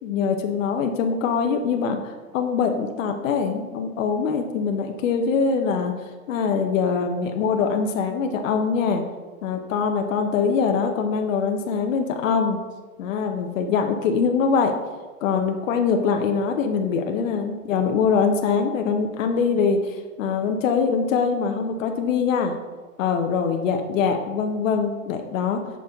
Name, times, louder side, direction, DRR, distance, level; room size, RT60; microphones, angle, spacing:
voice 1, 0.0-5.9 6.3-9.0 9.4-12.6 13.0-14.8 15.2-22.5 23.0-25.6, left 5 dB, 60° left, 4 dB, 0.8 m, -23 dB
6.2 x 5.3 x 3.5 m, 1.3 s
hypercardioid pair, 160°, 43 cm